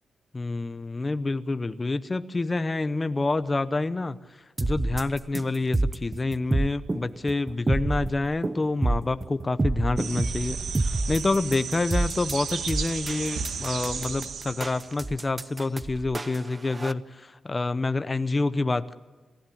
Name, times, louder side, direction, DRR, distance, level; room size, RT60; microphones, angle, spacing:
voice 1, 0.3-4.2 4.6-18.9, left 3 dB, 20° left, 11 dB, 0.8 m, -28 dB
sound 1, 4.6-16.9, right 2 dB, 20° right, 0.7 m, -28 dB
sound 2, 10.0-15.1, right 6 dB, 90° right, 2.2 m, -34 dB
30.0 x 15.5 x 8.6 m, 1.3 s
wide cardioid pair, 155°, 0 cm